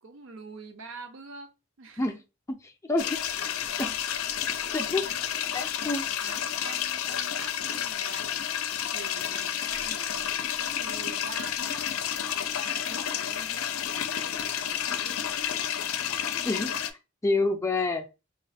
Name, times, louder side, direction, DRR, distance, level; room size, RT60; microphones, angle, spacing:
voice 1, 0.0-2.1 3.4-3.5 4.2-5.3 5.8-5.9 6.2-8.5 8.9-11.9 12.5-15.8, right 4 dB, 65° right, 0.6 m, -46 dB
voice 2, 2.5-3.2 3.8-4.0 4.7-5.1 5.5-6.1 16.4-16.8 17.2-18.1, left 2 dB, 15° left, 0.4 m, -28 dB
sound 1, 3.0-16.9, left 9 dB, 80° left, 0.4 m, -31 dB
3.0 x 2.1 x 4.1 m
head